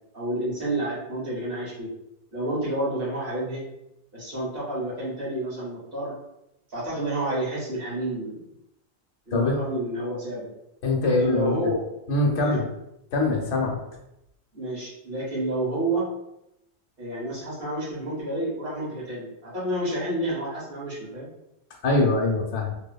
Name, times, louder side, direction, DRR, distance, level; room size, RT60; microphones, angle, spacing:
voice 1, 0.1-1.9 2.3-3.6 4.1-6.1 6.7-8.4 9.3-10.5 11.0-11.8 12.4-12.6 14.5-16.1 17.0-21.3, right 1 dB, 60° right, -7 dB, 1.4 m, -29 dB
voice 2, 10.8-11.7 12.1-12.6 13.1-13.8 21.8-22.7, left 2 dB, 80° left, 0 dB, 0.9 m, -23 dB
2.7 x 2.5 x 2.2 m, 0.84 s
omnidirectional pair, 1.1 m